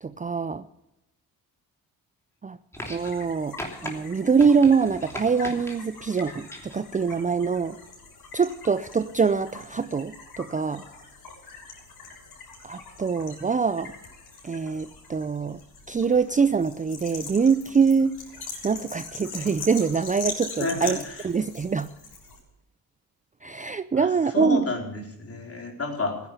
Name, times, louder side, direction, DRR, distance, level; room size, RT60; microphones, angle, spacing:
voice 1, 0.0-0.6 2.4-2.6 2.9-3.6 3.8-7.8 8.3-10.8 12.6-13.9 14.4-15.6 15.9-18.2 18.6-21.0 21.2-21.9 23.4-24.7, right 5 dB, 20° right, 13 dB, 0.5 m, -24 dB
sound 1, 2.7-3.3 3.6-3.9 4.4-5.7 6.2-6.8 7.9-8.0, equal, 5° left, 3.0 m, -38 dB
sound 2, 2.8-22.4, left 4 dB, 75° left, 6.4 m, -42 dB
voice 2, 20.6-21.3 23.9-26.2, left 2 dB, 35° left, 2 dB, 4.1 m, -30 dB
15.0 x 10.5 x 6.9 m, 0.89 s
cardioid pair, 95°, 38 cm